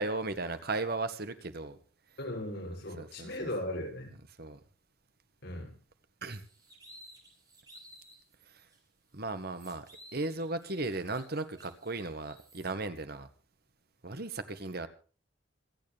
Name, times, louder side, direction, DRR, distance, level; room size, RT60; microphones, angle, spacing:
voice 1, 0.0-1.8 3.0-3.3 4.4-4.6 6.2-6.4 9.1-9.9 10.1-13.3 14.0-14.9, right 2 dB, 55° right, 1.7 m, -36 dB
voice 2, 2.2-4.1 5.4-5.8, left 1 dB, 65° left, 7.5 m, -37 dB
sound 1, 6.4-8.2 8.7-8.8 9.2-12.7, equal, 20° right, 6.1 m, -56 dB
26.5 x 9.8 x 3.5 m
head